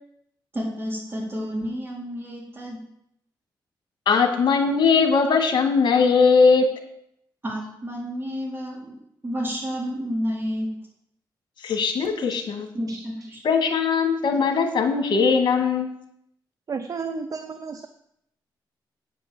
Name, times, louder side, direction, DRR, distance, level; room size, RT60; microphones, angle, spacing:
voice 1, 0.5-2.8 7.4-9.0 9.2-10.7 12.7-13.4, equal, 25° right, -3 dB, 4.3 m, -30 dB
voice 2, 4.1-6.7 11.6-12.7 13.4-15.9, left 5 dB, 65° left, 4 dB, 2.0 m, -20 dB
voice 3, 16.7-17.9, right 5 dB, 45° right, 9 dB, 0.7 m, -32 dB
8.9 x 5.3 x 7.8 m, 0.75 s
cardioid pair, 85°, 8 cm